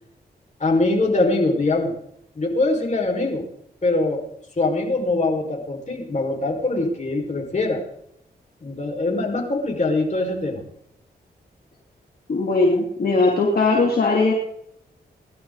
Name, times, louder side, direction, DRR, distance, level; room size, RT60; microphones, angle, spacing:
voice 1, 0.6-1.9 2.4-3.4 3.8-4.2 4.6-7.8 8.6-10.6, left 2 dB, 40° left, 1 dB, 5.3 m, -22 dB
voice 2, 12.3-14.3, left 3 dB, 60° left, -1 dB, 2.8 m, -19 dB
20.5 x 12.0 x 4.1 m, 0.72 s
cardioid pair, 60°, 18 cm